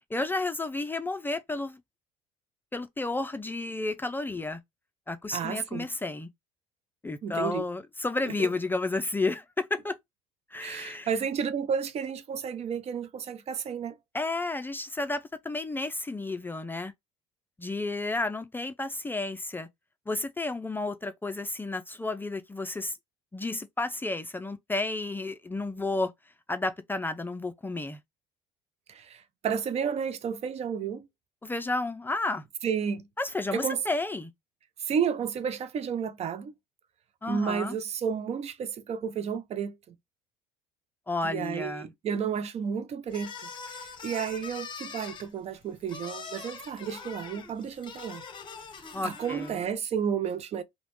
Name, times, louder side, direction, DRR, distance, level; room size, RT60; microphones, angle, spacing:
voice 1, 0.1-1.8 2.7-4.6 5.1-6.3 7.0-10.0 10.5-11.1 14.1-16.9 17.6-19.7 20.1-22.9 23.3-26.1 26.5-28.0 31.4-32.4 33.2-34.3 37.2-37.8 41.1-41.9 48.9-49.6, left 2 dB, 15° left, 0.4 m, -32 dB
voice 2, 5.3-5.9 7.2-7.7 8.3-8.5 10.6-14.0 28.9-31.1 32.6-33.1 33.5-33.8 34.8-36.5 37.3-39.9 41.2-48.2 49.0-50.6, right 7 dB, 45° right, 0.5 m, -32 dB
sound 1, 43.1-49.7, left 5 dB, 30° left, 0.8 m, -43 dB
3.0 x 2.2 x 2.9 m
supercardioid pair, 80°, 16 cm